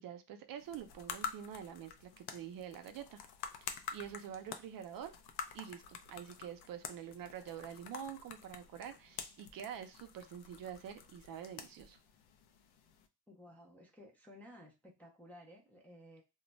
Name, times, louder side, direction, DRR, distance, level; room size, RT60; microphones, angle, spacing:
voice 1, 0.0-3.2 3.6-5.1 5.5-12.0, right 9 dB, 60° right, 8 dB, 0.5 m, -47 dB
sound 1, 0.6-13.1, left 7 dB, 75° left, 0.5 m, -48 dB
voice 2, 13.3-16.2, left 1 dB, 5° left, -2 dB, 0.3 m, -56 dB
2.2 x 2.0 x 3.8 m, 0.28 s
cardioid pair, 165°, 39 cm